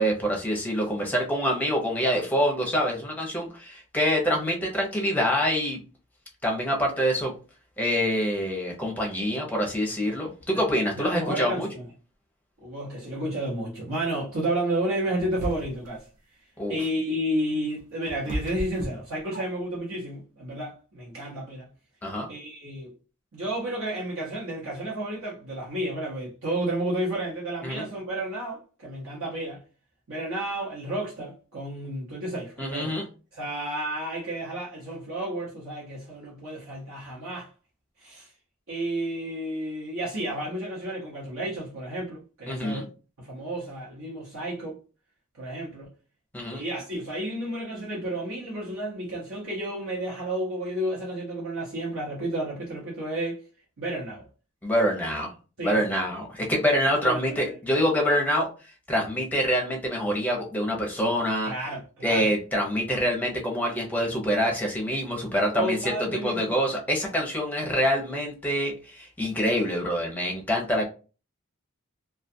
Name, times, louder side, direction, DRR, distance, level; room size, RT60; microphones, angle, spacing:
voice 1, 0.0-5.8 6.4-7.3 7.8-11.7 16.6-16.8 22.0-22.3 27.6-27.8 32.6-33.0 42.5-42.9 46.3-46.6 54.6-55.3 55.6-58.5 58.9-61.5 62.0-65.8 66.1-70.8, equal, 5° left, 0.6 m, -26 dB
voice 2, 10.9-11.9 12.6-16.1 16.7-21.7 22.3-22.9 23.3-29.6 30.1-32.9 33.3-37.5 38.0-38.3 38.7-42.8 43.2-44.8 45.4-45.9 46.5-53.4 53.8-54.3 55.6-55.8 57.0-57.5 61.4-62.3 65.5-66.6, right 1 dB, 60° right, 0.9 m, -31 dB
sound 1, 15.2-16.0 17.5-19.8, equal, 40° right, 0.6 m, -35 dB
2.3 x 2.3 x 2.6 m
head